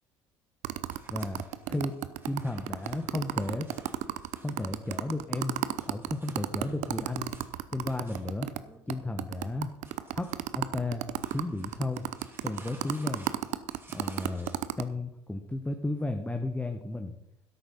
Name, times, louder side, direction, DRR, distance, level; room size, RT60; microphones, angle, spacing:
sound 1, 0.6-8.6 8.9-9.0 9.2-14.8, right 14 dB, 50° right, 0.7 m, -33 dB
sound 2, 0.9-14.8, right 2 dB, 15° right, 2.9 m, -57 dB
voice 1, 1.1-1.4 1.7-2.0 2.3-3.7 4.4-7.3 7.7-8.5 8.9-9.7 10.1-12.0 12.4-13.3 13.9-14.5 14.8-17.1, left 2 dB, 10° left, 5 dB, 1.2 m, -33 dB
13.0 x 11.0 x 4.2 m, 0.78 s
figure-of-eight pair, 60°, 16 cm